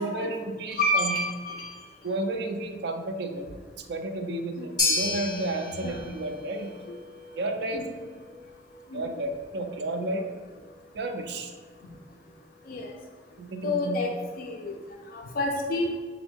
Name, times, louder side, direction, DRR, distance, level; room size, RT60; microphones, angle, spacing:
voice 1, 0.0-1.2 2.0-3.5 3.8-6.7 7.4-7.9 8.9-10.3 10.9-11.5 13.4-14.1, right 2 dB, 65° right, 5 dB, 0.4 m, -32 dB
voice 2, 0.8-1.8 5.8-5.9 7.7-7.8 8.9-9.0 12.7-12.9 13.6-14.1 14.4-14.8 15.1-15.9, left 2 dB, 55° left, 2 dB, 0.3 m, -28 dB
sound 1, 4.8-13.2, left 2 dB, 25° left, 0.9 m, -35 dB
3.5 x 2.1 x 4.3 m, 1.5 s
head